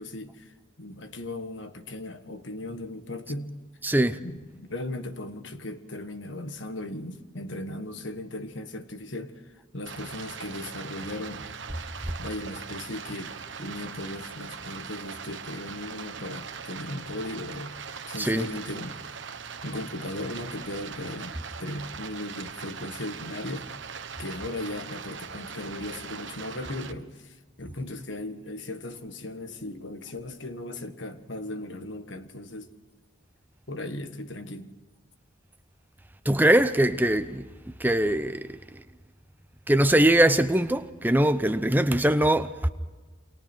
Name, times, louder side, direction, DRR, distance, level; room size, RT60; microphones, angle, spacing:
voice 1, 0.0-3.6 4.2-9.3 9.7-11.5 12.0-17.7 18.1-19.0 19.6-23.7 24.2-32.7 33.7-34.7, left 1 dB, 65° left, 1.5 m, -37 dB
voice 2, 3.8-4.2 18.2-18.4 36.3-37.4 37.8-38.4 39.7-42.7, right 1 dB, 10° right, 0.7 m, -22 dB
Stream, 9.9-26.9, right 6 dB, 65° right, 1.2 m, -40 dB
29.0 x 25.0 x 4.6 m
head